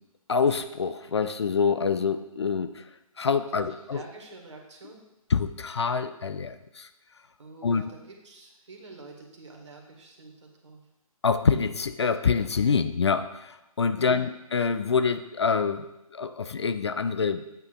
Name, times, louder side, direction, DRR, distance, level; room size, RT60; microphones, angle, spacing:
voice 1, 0.3-2.9 3.2-4.0 5.3-6.9 7.6-7.8 11.2-17.5, left 5 dB, 45° left, 11 dB, 0.4 m, -26 dB
voice 2, 3.5-5.0 7.4-10.8 14.0-14.3, right 3 dB, 50° right, 1 dB, 1.6 m, -47 dB
8.8 x 7.8 x 2.4 m, 0.94 s
figure-of-eight pair, 140°, 19 cm